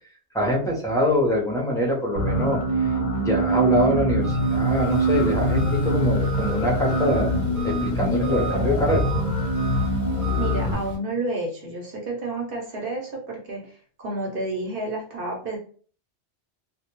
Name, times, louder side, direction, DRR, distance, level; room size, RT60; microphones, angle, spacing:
voice 1, 0.3-7.3 7.6-9.1, left 1 dB, 5° left, -4 dB, 0.5 m, -24 dB
sound 1, 2.2-10.7, right 1 dB, 55° left, 0.7 m, -24 dB
Engine, 4.2-11.0, right 1 dB, 75° right, 1.1 m, -34 dB
voice 2, 10.4-13.8 14.0-15.6, right 2 dB, 55° right, -1 dB, 0.8 m, -30 dB
2.2 x 2.1 x 2.9 m, 0.43 s
omnidirectional pair, 1.1 m